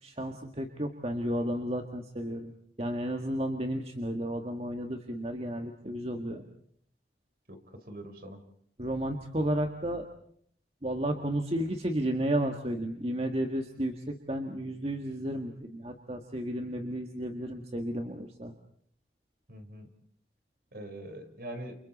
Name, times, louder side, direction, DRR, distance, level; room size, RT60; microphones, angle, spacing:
voice 1, 0.0-2.5 2.8-6.4 8.8-10.1 10.8-18.5, right 1 dB, 35° right, 4 dB, 1.9 m, -32 dB
voice 2, 7.5-8.4 19.5-19.9 20.7-21.8, right 1 dB, 55° right, 7 dB, 4.4 m, -43 dB
30.0 x 29.5 x 4.2 m, 0.63 s
head